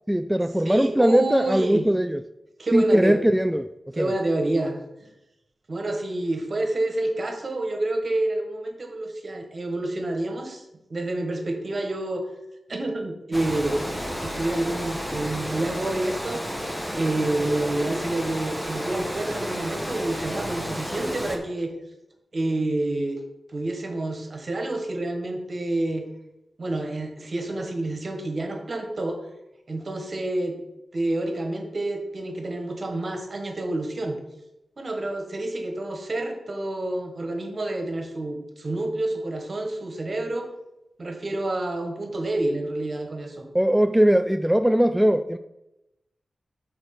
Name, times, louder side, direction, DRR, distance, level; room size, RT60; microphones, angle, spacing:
voice 1, 0.1-2.2 2.7-3.7 4.0-4.1 43.5-45.4, equal, 5° right, 8 dB, 0.3 m, -20 dB
voice 2, 0.6-1.9 2.6-3.2 3.9-5.1 5.7-10.6 10.9-12.2 12.7-13.8 14.2-16.5 16.9-21.7 22.3-23.2 23.5-26.1 26.6-29.2 29.7-30.6 30.9-34.2 34.8-40.5 41.0-43.4, right 2 dB, 50° right, 4 dB, 1.6 m, -28 dB
Water, 13.3-21.4, equal, 10° left, 1.3 m, -32 dB
6.2 x 4.8 x 6.1 m, 0.91 s
cardioid pair, 70°, 0 cm